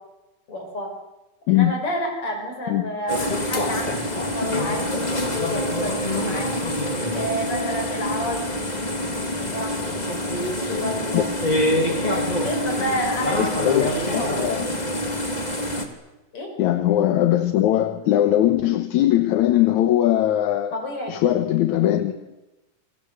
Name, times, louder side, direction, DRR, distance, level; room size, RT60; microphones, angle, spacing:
voice 1, 0.5-0.9 1.5-6.5 7.1-10.2 10.5-11.3 12.4-14.5 16.3-16.5 20.7-21.2, equal, 45° left, 7.2 m, -30 dB
sound 1, 3.1-15.8, left 1 dB, 15° left, 2.5 m, -25 dB
voice 2, 13.4-13.9 14.1-14.8 16.6-20.7 21.1-22.2, left 12 dB, 75° left, 2.5 m, -20 dB
29.0 x 24.0 x 8.0 m
omnidirectional pair, 3.4 m